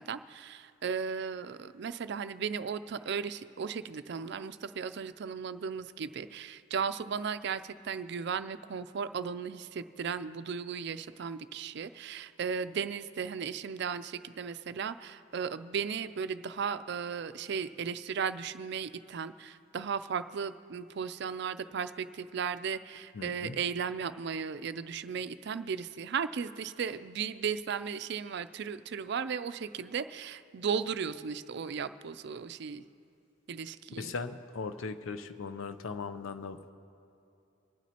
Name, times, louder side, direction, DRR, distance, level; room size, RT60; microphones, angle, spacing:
voice 1, 0.0-32.8 33.5-34.1, right 6 dB, 55° right, 12 dB, 0.4 m, -36 dB
voice 2, 23.1-23.6 34.0-36.7, left 4 dB, 80° left, 10 dB, 0.5 m, -39 dB
26.0 x 9.1 x 2.9 m, 2.7 s
head